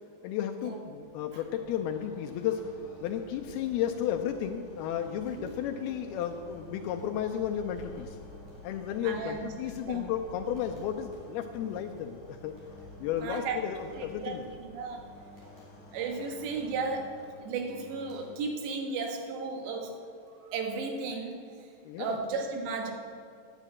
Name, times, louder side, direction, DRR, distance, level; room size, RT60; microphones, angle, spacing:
voice 1, 0.2-2.7 3.0-8.2 8.6-12.5 13.0-14.4 21.8-22.2, left 9 dB, 80° left, 5 dB, 2.3 m, -33 dB
sound 1, 0.8-17.8, left 2 dB, 50° left, 2.1 m, -52 dB
sound 2, 2.3-18.8, equal, 45° right, 4.3 m, -53 dB
voice 2, 9.0-9.5 9.8-10.1 13.2-13.6 14.0-15.1 15.9-17.1 17.4-20.0 20.3-21.7 22.0-22.9, right 4 dB, 85° right, 4 dB, 3.5 m, -35 dB
10.0 x 9.0 x 8.5 m, 2.3 s
omnidirectional pair, 4.9 m